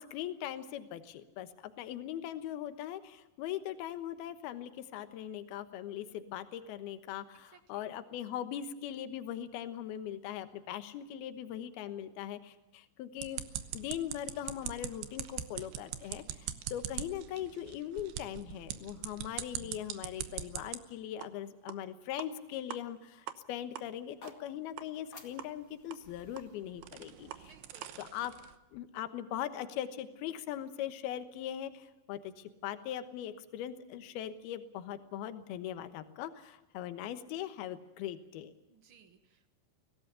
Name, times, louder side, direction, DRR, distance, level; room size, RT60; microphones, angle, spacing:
voice 1, 0.0-13.4 13.7-27.5 28.0-28.3 28.7-38.5, left 11 dB, 70° left, 10 dB, 3.0 m, -40 dB
voice 2, 7.3-7.9 8.2-8.4 27.4-28.0 38.7-39.5, right 6 dB, 60° right, 8 dB, 1.4 m, -62 dB
sound 1, 13.2-20.8 21.2-21.3 21.7-21.8 22.2-22.3 22.7-22.8 23.3-23.4 23.8-23.9 24.3-24.4 24.8-24.9 25.4-25.5 25.9-28.6, right 11 dB, 75° right, 2.9 m, -42 dB
sound 2, 24.0-28.1, left 3 dB, 30° left, 2.0 m, -57 dB
24.0 x 17.5 x 6.9 m, 1.0 s
omnidirectional pair, 4.8 m